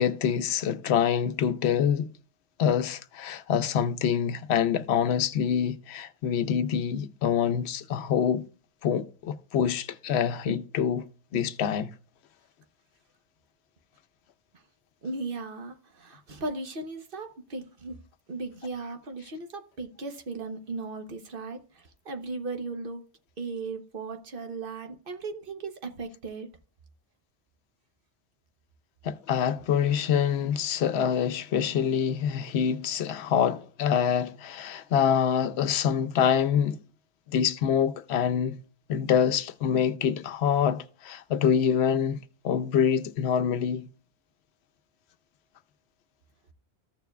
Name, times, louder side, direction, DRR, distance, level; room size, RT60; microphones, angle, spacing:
voice 1, 0.0-2.1 2.6-8.4 8.8-11.0 11.3-11.9 29.0-36.8 37.3-38.6 38.9-42.2 42.4-43.9, left 8 dB, 75° left, 0.8 m, -25 dB
voice 2, 15.0-17.9 18.3-23.0 23.4-26.5, right 3 dB, 55° right, 1.0 m, -37 dB
14.5 x 6.9 x 2.3 m
omnidirectional pair, 1.1 m